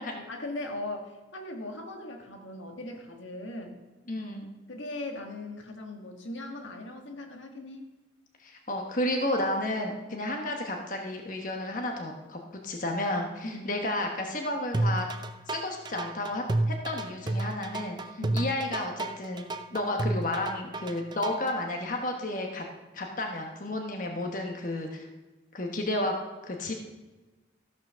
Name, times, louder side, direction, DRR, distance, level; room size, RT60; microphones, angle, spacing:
voice 1, 0.0-3.8 4.7-7.8 13.4-13.7 18.2-18.5, left 2 dB, 85° left, 3 dB, 1.6 m, -39 dB
voice 2, 4.1-4.5 8.4-15.1 15.5-19.4 19.7-22.6 22.9-25.1 25.5-26.1 26.4-26.7, left 1 dB, 45° left, 2 dB, 1.2 m, -32 dB
sound 1, 14.7-21.6, right 2 dB, 20° right, 0.5 m, -30 dB
14.0 x 6.1 x 6.2 m, 1.2 s
head